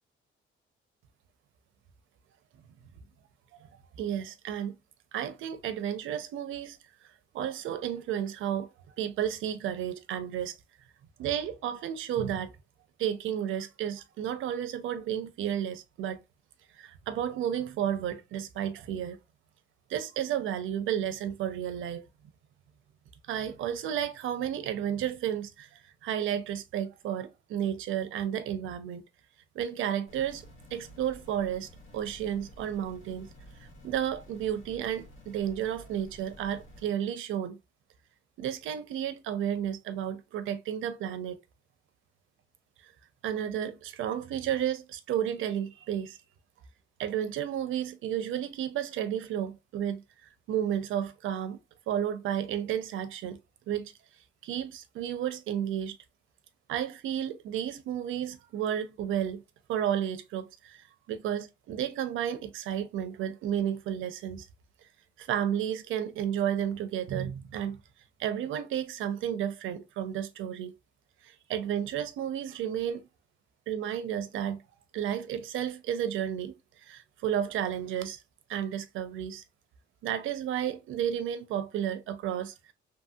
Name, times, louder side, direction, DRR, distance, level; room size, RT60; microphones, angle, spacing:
voice 1, 4.0-4.7 5.1-6.8 7.3-8.7 9.0-10.5 11.2-12.5 13.0-16.2 16.8-19.2 19.9-22.0 23.3-29.0 29.5-30.4 30.7-33.3 33.8-37.6 38.4-41.4 42.8-42.9 43.2-46.2 47.0-50.0 50.5-51.6 51.9-53.4 53.7-53.9 54.4-56.0 56.7-59.4 59.7-64.5 65.2-67.8 68.2-70.7 71.2-73.0 73.7-74.6 74.9-78.2 78.5-79.4 80.0-82.5, right 10 dB, 75° right, 0.5 m, -32 dB
sound 1, 30.1-36.9, equal, 85° left, 1.4 m, -52 dB
3.0 x 2.7 x 2.2 m
cardioid pair, 170°, 20 cm